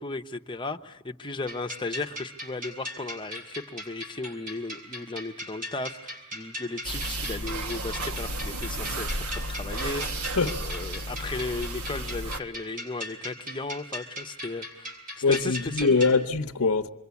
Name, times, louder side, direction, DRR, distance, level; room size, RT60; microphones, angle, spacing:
voice 1, 0.0-15.9, left 3 dB, 20° left, 0.9 m, -36 dB
sound 1, 1.5-16.2, equal, 40° right, 6.6 m, -39 dB
sound 2, 6.8-12.4, right 1 dB, 80° right, 1.3 m, -33 dB
voice 2, 15.2-16.9, left 4 dB, 75° left, 0.8 m, -23 dB
27.5 x 23.0 x 8.4 m
head